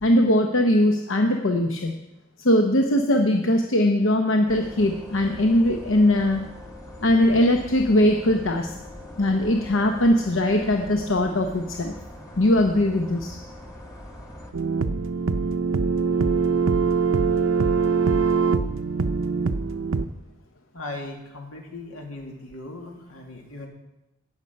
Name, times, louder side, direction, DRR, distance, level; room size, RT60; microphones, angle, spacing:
voice 1, 0.0-1.9 2.4-6.4 7.0-8.7 9.2-11.9 12.4-13.4, left 1 dB, 70° left, 3 dB, 0.8 m, -20 dB
sound 1, 4.5-14.5, left 1 dB, 15° left, 1.5 m, -42 dB
sound 2, 14.5-20.0, right 5 dB, 85° right, 0.7 m, -23 dB
voice 2, 20.7-23.7, left 2 dB, 85° left, 2 dB, 2.3 m, -38 dB
17.0 x 6.7 x 5.3 m, 0.95 s
head